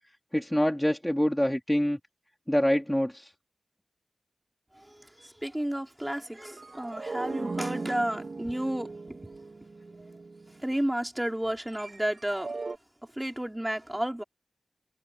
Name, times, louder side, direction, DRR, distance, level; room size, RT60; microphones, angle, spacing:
voice 1, 0.3-2.0 2.5-3.3, equal, 5° left, 3.1 m, -25 dB
voice 2, 4.7-9.2 10.0-10.1 10.5-12.5 13.1-14.2, right 1 dB, 10° right, 4.2 m, -32 dB
sound 1, 6.4-10.6 11.6-12.8, right 3 dB, 55° right, 2.3 m, -38 dB
wide cardioid pair, 105°, 0 cm